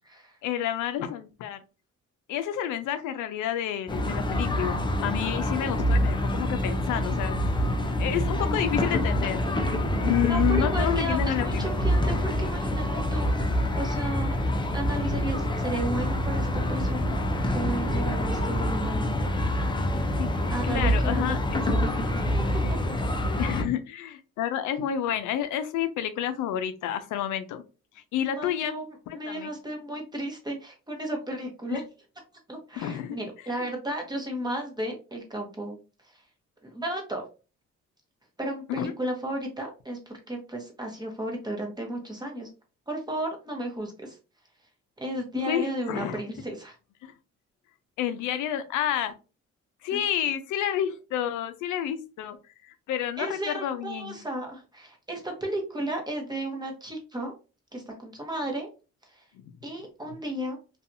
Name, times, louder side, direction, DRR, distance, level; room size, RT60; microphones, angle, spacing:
voice 1, 0.4-1.6 2.3-7.4 8.0-9.6 10.0-11.7 12.0-12.3 20.2-21.4 22.0-22.3 23.4-27.6 28.1-28.7 29.1-29.5 31.7-31.8 32.8-33.2 38.7-38.9 45.4-46.2 47.0-47.1 48.0-49.1 49.8-52.4 52.6-54.2, left 10 dB, 85° left, 10 dB, 0.4 m, -30 dB
sound 1, 3.9-23.6, left 1 dB, 15° left, 0.4 m, -26 dB
voice 2, 10.3-12.8 13.1-14.4 14.7-17.1 17.5-19.1 20.5-21.4 22.2-22.4 22.7-23.0 23.3-23.4 28.4-31.8 32.5-35.8 36.1-36.2 36.6-37.2 38.4-42.5 42.9-44.2 45.0-46.8 49.9-50.0 53.2-57.3 57.7-58.7 59.2-59.3 59.6-60.6, right 1 dB, 15° right, 1 dB, 0.9 m, -34 dB
2.6 x 2.3 x 2.6 m, 0.33 s
cardioid pair, 90°, 30 cm